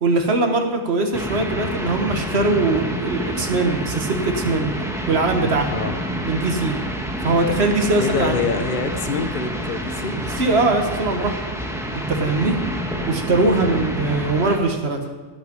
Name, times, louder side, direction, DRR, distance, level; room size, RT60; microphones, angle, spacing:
voice 1, 0.0-4.7 5.1-5.7 6.2-6.8 7.2-8.4 10.4-11.4 12.1-12.6 13.1-15.0, right 3 dB, 65° right, 4 dB, 1.7 m, -21 dB
sound 1, 1.1-14.6, equal, 5° right, 1.3 m, -28 dB
voice 2, 8.0-10.2 13.6-13.9, left 4 dB, 45° left, 7 dB, 1.1 m, -26 dB
18.0 x 8.0 x 5.4 m, 1.3 s
omnidirectional pair, 1.2 m